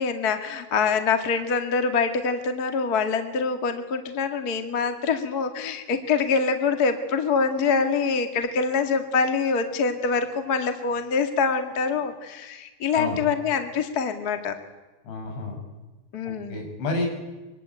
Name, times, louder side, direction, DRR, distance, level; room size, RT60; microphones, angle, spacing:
voice 1, 0.0-14.5 16.1-16.6, left 5 dB, 45° left, 7 dB, 1.2 m, -25 dB
voice 2, 15.0-15.6 16.3-17.1, left 2 dB, 80° left, 2 dB, 8.2 m, -30 dB
24.0 x 24.0 x 9.2 m, 1.2 s
omnidirectional pair, 5.2 m